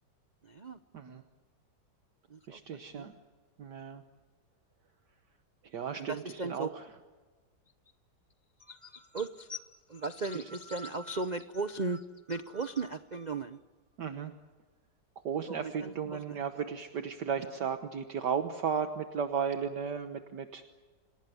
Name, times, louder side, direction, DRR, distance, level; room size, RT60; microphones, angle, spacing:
voice 1, 0.4-0.8 2.3-3.1 6.0-6.7 8.6-13.6 15.5-16.6 17.4-17.5, right 3 dB, 85° right, 11 dB, 0.4 m, -37 dB
voice 2, 2.5-3.1 3.6-4.0 5.6-6.8 14.0-14.3 15.2-20.6, right 7 dB, 65° right, 7 dB, 1.7 m, -35 dB
27.5 x 18.0 x 9.4 m, 1.4 s
omnidirectional pair, 2.0 m